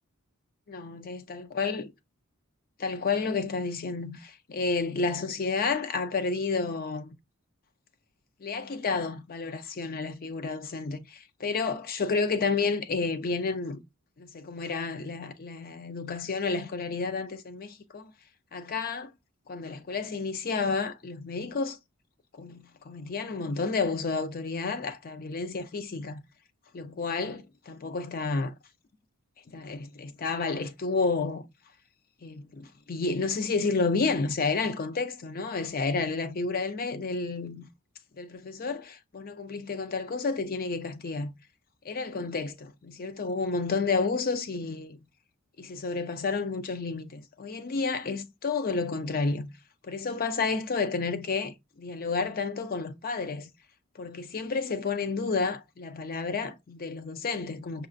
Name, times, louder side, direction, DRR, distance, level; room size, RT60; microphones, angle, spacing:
voice 1, 0.7-1.9 2.8-7.1 8.4-13.8 14.2-18.1 18.5-19.1 19.5-21.8 22.4-26.2 26.7-28.5 29.5-31.5 32.2-37.7 38.1-41.3 41.8-45.0 45.6-49.5 49.8-53.5 54.0-57.9, left 4 dB, 45° left, 0.5 m, -31 dB
5.4 x 2.4 x 2.5 m
head